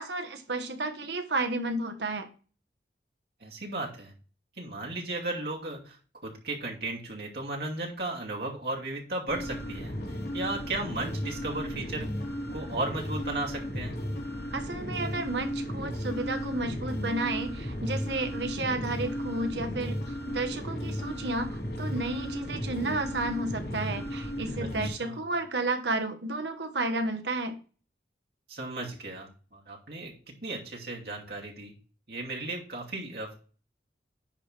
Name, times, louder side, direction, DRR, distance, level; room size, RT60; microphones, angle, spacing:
voice 1, 0.0-2.3 14.5-27.6, right 2 dB, 80° right, 7 dB, 1.4 m, -32 dB
voice 2, 3.4-4.1 4.6-6.0 6.2-9.9 10.3-12.1 12.5-14.0 24.6-24.7 25.0-25.2 28.5-31.7 32.1-33.3, right 2 dB, 65° right, -1 dB, 2.6 m, -35 dB
sound 1, 9.3-24.9, equal, 65° left, 2.2 m, -35 dB
10.0 x 3.5 x 5.8 m, 0.37 s
head